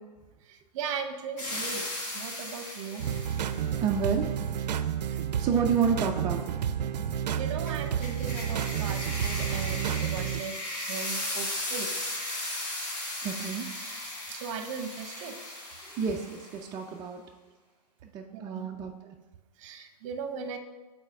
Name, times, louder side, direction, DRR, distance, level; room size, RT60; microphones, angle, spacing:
voice 1, 0.5-3.1 5.1-5.2 7.3-10.6 10.9-11.9 14.3-15.3 18.3-18.7 19.6-20.6, right 6 dB, 50° right, 7 dB, 0.8 m, -38 dB
sound 1, 1.4-3.7 7.6-16.6, left 1 dB, 35° left, 1.8 m, -36 dB
sound 2, 3.0-10.4, right 9 dB, 85° right, 0.4 m, -31 dB
voice 2, 3.8-4.3 5.4-7.1 13.2-13.7 15.9-17.2 18.0-19.2, right 6 dB, 20° right, 1 dB, 0.3 m, -30 dB
5.5 x 4.1 x 4.7 m, 1.3 s
hypercardioid pair, 130°, 21 cm